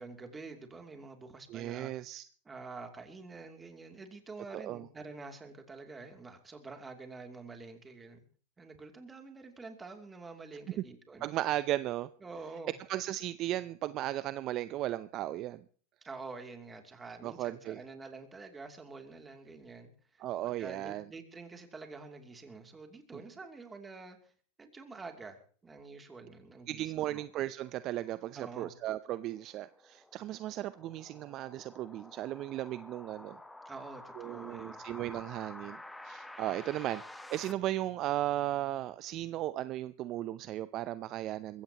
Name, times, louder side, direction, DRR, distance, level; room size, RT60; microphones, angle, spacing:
voice 1, 0.0-1.9 2.4-8.2 8.6-11.4 12.2-12.7 16.0-24.3 24.6-27.3 28.3-28.7 33.6-34.8, right 3 dB, 15° right, 4 dB, 2.8 m, -47 dB
voice 2, 1.5-2.2 4.5-4.9 11.2-12.1 12.9-15.6 17.2-17.8 20.2-21.0 26.7-33.4 34.2-41.6, right 14 dB, 45° right, 15 dB, 0.6 m, -36 dB
sound 1, 28.8-37.5, left 1 dB, 5° left, 1.2 m, -50 dB
22.0 x 16.0 x 3.0 m, 0.44 s
hypercardioid pair, 110°, 0 cm